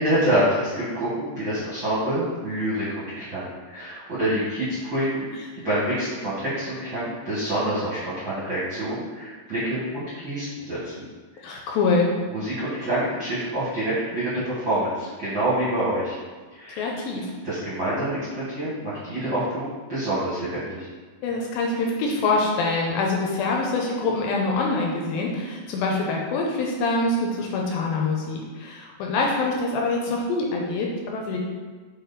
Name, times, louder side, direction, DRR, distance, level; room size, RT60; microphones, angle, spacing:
voice 1, 0.0-11.0 11.3-11.5 12.3-16.2 16.5-16.9 17.4-20.9, right 1 dB, 60° right, -10 dB, 1.3 m, -27 dB
voice 2, 11.4-12.1 16.8-17.3 21.2-31.4, left 3 dB, 80° left, -1 dB, 2.3 m, -25 dB
6.2 x 4.2 x 4.1 m, 1.4 s
omnidirectional pair, 4.5 m